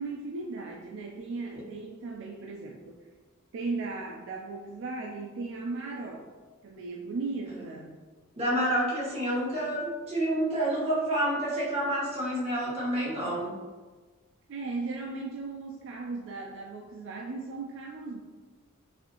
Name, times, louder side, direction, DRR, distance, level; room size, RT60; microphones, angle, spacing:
voice 1, 0.0-3.1 3.5-6.3 6.6-8.0 14.5-18.2, right 3 dB, 60° right, 0 dB, 0.4 m, -37 dB
voice 2, 8.4-13.5, right 1 dB, 30° right, -7 dB, 1.2 m, -28 dB
4.1 x 2.6 x 2.9 m, 1.3 s
head